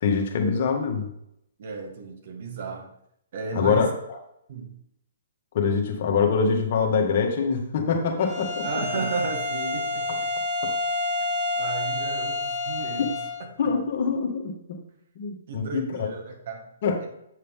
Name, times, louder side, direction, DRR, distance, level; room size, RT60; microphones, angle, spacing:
voice 1, 0.0-1.1 3.5-3.9 5.5-8.7 13.6-14.8 15.1-16.1 16.8-17.0, left 5 dB, 50° left, 3 dB, 1.6 m, -24 dB
voice 2, 1.6-2.9 3.3-3.9 4.5-4.7 8.6-10.3 11.2-11.3 11.6-13.1 13.6-13.7 15.5-16.7 17.0-17.1, right 4 dB, 55° right, 3 dB, 1.8 m, -34 dB
Bowed string instrument, 8.2-13.4, left 2 dB, 15° right, 2.7 m, -29 dB
8.6 x 6.5 x 3.7 m, 0.76 s
hypercardioid pair, 140°, 0 cm